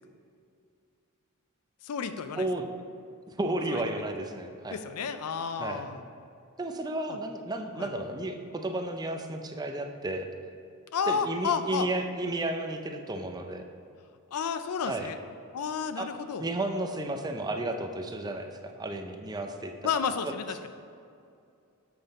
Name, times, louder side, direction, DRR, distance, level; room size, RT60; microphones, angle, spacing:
voice 1, 1.8-2.5 3.7-3.8 4.7-6.0 7.1-7.2 7.8-7.9 10.9-11.9 14.3-15.2 15.5-16.4 19.8-20.7, left 6 dB, 85° left, 10 dB, 0.4 m, -31 dB
voice 2, 2.4-2.7 3.3-4.8 5.6-5.8 6.6-10.3 11.1-13.6 14.9-15.1 16.0-16.1 16.4-19.7 20.2-20.3, right 1 dB, 20° right, 5 dB, 0.4 m, -33 dB
7.7 x 5.3 x 4.0 m, 2.4 s
head